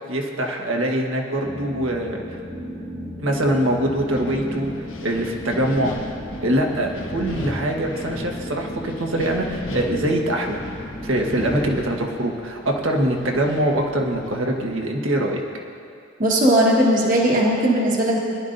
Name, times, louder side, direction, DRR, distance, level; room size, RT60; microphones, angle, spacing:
voice 1, 0.1-2.4 3.2-4.7 5.0-5.9 6.4-10.6 11.0-15.4, right 1 dB, 65° right, 1 dB, 1.4 m, -23 dB
sound 1, 1.4-11.7, equal, 10° right, 1.2 m, -35 dB
Wind, 3.3-14.9, left 1 dB, 70° left, 1.2 m, -38 dB
voice 2, 16.2-18.2, right 1 dB, 40° right, -3 dB, 1.5 m, -18 dB
21.5 x 11.5 x 2.6 m, 2.4 s
head